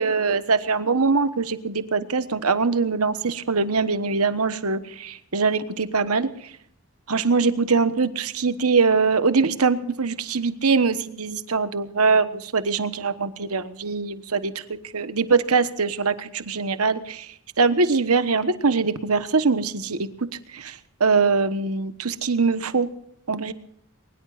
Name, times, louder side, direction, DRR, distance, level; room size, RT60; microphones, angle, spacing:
voice 1, 0.0-6.5 7.1-20.1 20.5-22.9 23.3-23.5, right 4 dB, 85° right, 11 dB, 1.2 m, -23 dB
22.5 x 20.5 x 2.5 m, 0.68 s
head